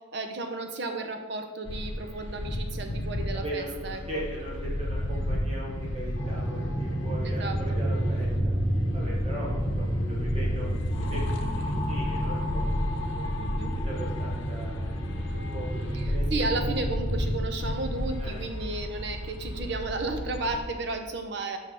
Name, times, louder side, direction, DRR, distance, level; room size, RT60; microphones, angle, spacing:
voice 1, 0.1-4.2 7.2-7.6 13.4-13.7 15.9-21.6, right 3 dB, 55° right, 6 dB, 0.8 m, -33 dB
sound 1, 1.6-20.6, left 1 dB, 65° left, 0.8 m, -33 dB
voice 2, 3.3-8.3 8.9-10.7 11.0-12.9 13.1-13.2 13.7-16.3 18.2-18.4, right 1 dB, 30° right, -4 dB, 1.2 m, -39 dB
sound 2, 6.1-17.3, equal, 35° left, 1.7 m, -30 dB
5.8 x 5.4 x 4.8 m, 1.5 s
head